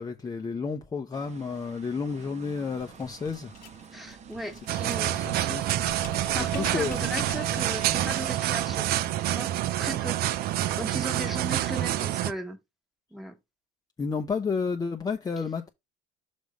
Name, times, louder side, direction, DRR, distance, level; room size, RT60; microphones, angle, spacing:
voice 1, 0.0-3.5 4.7-4.9 5.1-5.6 6.0-6.1 6.4-7.0 14.0-15.7, left 5 dB, 20° left, 0.7 m, -31 dB
sound 1, 1.1-9.3, right 7 dB, 40° right, 0.9 m, -45 dB
sound 2, 2.7-8.4, left 9 dB, 50° left, 1.0 m, -43 dB
voice 2, 3.9-5.2 6.2-8.9 9.3-10.2 10.6-12.6 13.1-13.4, right 1 dB, ahead, 1.3 m, -37 dB
sound 3, 4.7-12.3, right 13 dB, 60° right, 0.5 m, -27 dB
6.2 x 3.4 x 5.2 m
supercardioid pair, 105°, 18 cm